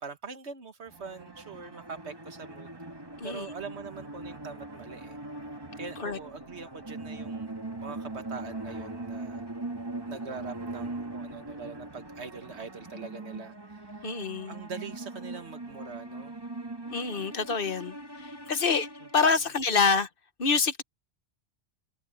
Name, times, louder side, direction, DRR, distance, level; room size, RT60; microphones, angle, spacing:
voice 1, 0.0-2.8 3.2-5.2 5.8-9.5 10.1-16.4 19.0-19.1, right 5 dB, 90° right, 1.8 m, -43 dB
sound 1, 0.9-19.6, right 2 dB, 20° right, 2.1 m, -41 dB
voice 2, 14.0-14.5 16.9-18.0 18.2-18.9 19.1-20.1 20.4-20.8, left 5 dB, 55° left, 1.3 m, -26 dB
omnidirectional pair, 1.1 m